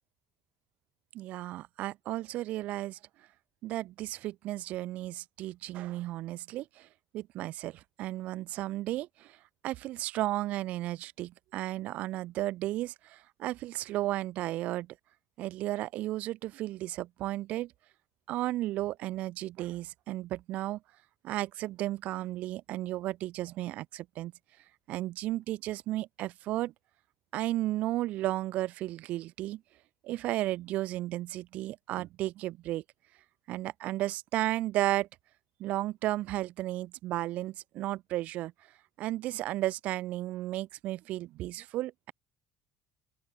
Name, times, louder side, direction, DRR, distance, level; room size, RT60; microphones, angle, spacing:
voice 1, 1.1-3.0 3.6-6.9 7.1-9.4 9.6-14.9 15.4-17.7 18.3-20.8 21.2-24.3 24.9-26.7 27.3-29.6 30.0-32.8 33.5-35.1 35.6-38.5 39.0-42.1, right 16 dB, 55° right, 0.8 m, -34 dB
open air
figure-of-eight pair, 55°, 3 cm